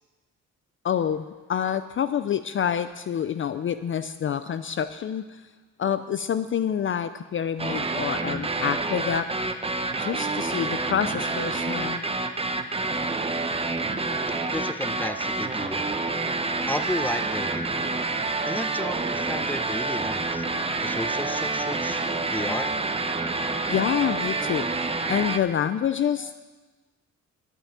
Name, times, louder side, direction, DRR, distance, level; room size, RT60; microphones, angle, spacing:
voice 1, 0.8-5.4 5.8-9.3 10.0-12.0 23.7-26.3, left 8 dB, 45° left, 12 dB, 0.5 m, -27 dB
sound 1, 7.6-25.4, right 3 dB, 20° right, 0.9 m, -28 dB
voice 2, 14.5-15.9 16.7-17.9 18.4-20.4 20.8-22.0 22.3-22.7, left 2 dB, 5° left, 11 dB, 0.7 m, -33 dB
11.5 x 9.0 x 7.4 m, 1.3 s
cardioid pair, 90°, 30 cm